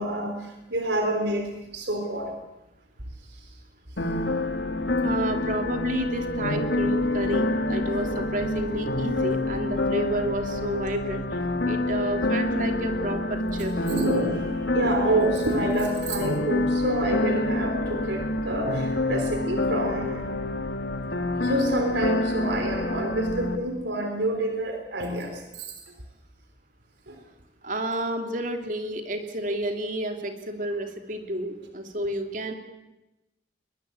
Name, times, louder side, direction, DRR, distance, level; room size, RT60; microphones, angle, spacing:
voice 1, 0.0-2.3 3.3-3.5 13.9-20.3 21.4-25.7 27.1-27.2, right 1 dB, 80° right, 5 dB, 3.6 m, -28 dB
sound 1, 4.0-23.6, left 2 dB, 80° left, 2.0 m, -27 dB
voice 2, 5.0-11.4 11.7-13.7 14.9-15.1 27.6-32.5, right 1 dB, 45° right, 5 dB, 2.9 m, -30 dB
21.5 x 21.5 x 8.5 m, 1.0 s
head